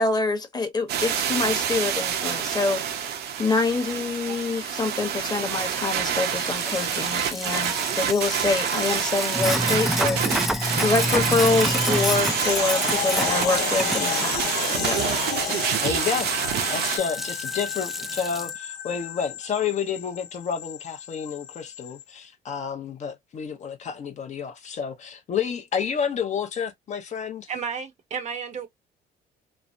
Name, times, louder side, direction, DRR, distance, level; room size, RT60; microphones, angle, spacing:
voice 1, 0.0-3.1 3.4-15.0, left 3 dB, 25° left, 1.0 m, -26 dB
sound 1, 0.9-17.0, right 9 dB, 75° right, 0.8 m, -27 dB
sound 2, 5.8-22.0, left 9 dB, 85° left, 0.7 m, -33 dB
Sink (filling or washing), 6.5-18.5, equal, ahead, 0.3 m, -30 dB
voice 2, 15.8-16.3 16.7-27.5, left 7 dB, 45° left, 0.7 m, -30 dB
voice 3, 27.5-28.7, right 6 dB, 45° right, 0.7 m, -32 dB
3.2 x 2.0 x 2.6 m
cardioid pair, 110°, 17 cm